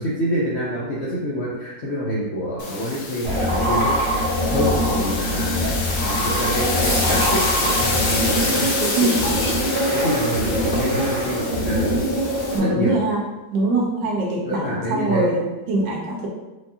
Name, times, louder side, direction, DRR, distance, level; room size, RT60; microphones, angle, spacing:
voice 1, 0.0-3.9 4.5-12.0 12.6-12.9 14.4-15.3 15.8-15.9, equal, 65° left, -6 dB, 0.6 m, -27 dB
sound 1, 2.6-12.6, left 3 dB, 85° left, 1.5 m, -28 dB
sound 2, 3.2-12.7, equal, 35° right, 1.0 m, -23 dB
sound 3, 6.6-11.1, left 1 dB, 50° left, 1.5 m, -29 dB
voice 2, 12.5-13.2 13.5-16.3, right 2 dB, 75° right, -3 dB, 1.6 m, -23 dB
4.7 x 2.6 x 2.7 m, 1.1 s
omnidirectional pair, 2.0 m